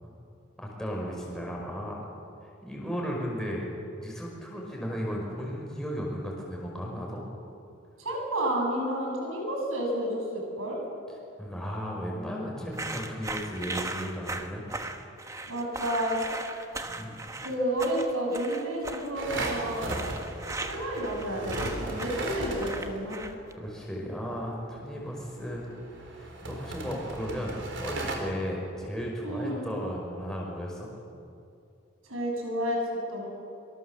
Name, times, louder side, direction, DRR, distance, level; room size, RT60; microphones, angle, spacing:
voice 1, 0.6-2.0 2.6-3.7 3.9-7.2 11.4-14.6 16.8-17.1 23.6-25.6 26.0-30.9, equal, 5° left, -3 dB, 5.4 m, -35 dB
voice 2, 8.0-10.8 15.5-16.2 17.4-19.9 20.6-23.3 29.2-29.7 32.0-33.3, equal, 90° right, 0 dB, 7.4 m, -30 dB
sound 1, 12.7-23.5, right 2 dB, 15° right, 1.2 m, -38 dB
sound 2, 19.1-23.2 25.1-28.2, right 2 dB, 65° right, 3.9 m, -36 dB
25.0 x 23.0 x 7.4 m, 2.6 s
head